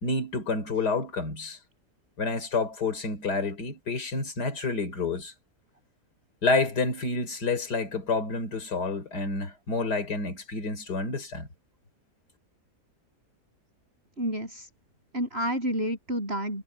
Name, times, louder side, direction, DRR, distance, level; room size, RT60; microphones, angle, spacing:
voice 1, 0.0-1.6 2.2-5.3 6.4-11.5, left 3 dB, 85° left, 3.9 m, -29 dB
voice 2, 14.2-14.7 15.1-16.6, equal, 40° right, 7.7 m, -29 dB
omnidirectional pair, 1.7 m